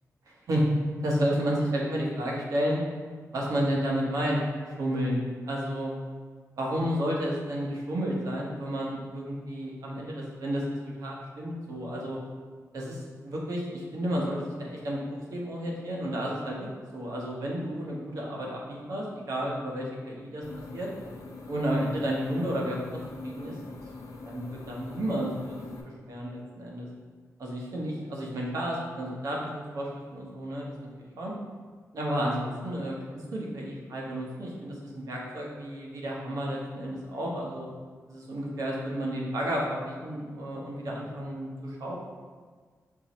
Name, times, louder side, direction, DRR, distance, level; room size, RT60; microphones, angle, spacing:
voice 1, 0.3-0.6 1.0-2.8 3.3-4.4 4.7-5.9 6.6-12.2 12.7-16.7 16.9-20.4 20.7-20.9 21.5-23.0 23.2-23.6 24.3-26.9 27.4-30.7 31.2-31.3 31.9-37.7 38.1-42.0, equal, 75° right, -3 dB, 1.0 m, -31 dB
sound 1, 20.4-25.8, left 3 dB, 70° left, 0.6 m, -43 dB
4.6 x 2.8 x 4.1 m, 1.5 s
wide cardioid pair, 100°, 6 cm